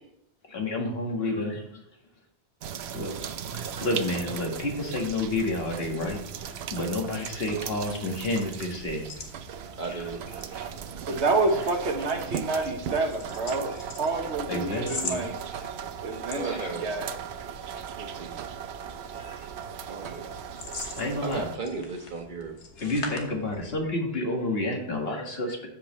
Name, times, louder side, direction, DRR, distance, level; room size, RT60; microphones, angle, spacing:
voice 1, 0.5-1.8 2.9-3.1 3.5-6.2 6.7-9.2 9.9-10.1 10.5-10.7 14.5-15.7 16.1-16.7 18.0-18.2 18.9-19.5 20.1-20.2 20.9-21.5 22.8-25.7, left 1 dB, 60° left, 1 dB, 2.0 m, -30 dB
sound 1, 2.6-21.6, right 8 dB, 75° right, 0.9 m, -38 dB
sound 2, 5.1-24.0, left 4 dB, 90° left, 1.6 m, -44 dB
voice 2, 9.8-10.2 16.3-16.9 17.9-18.4 19.9-20.3 21.2-22.6, right 4 dB, 45° right, 4 dB, 1.4 m, -35 dB
voice 3, 11.1-15.4 16.0-17.1, right 3 dB, 90° right, 3 dB, 1.6 m, -28 dB
14.0 x 5.2 x 3.2 m, 0.81 s
omnidirectional pair, 1.1 m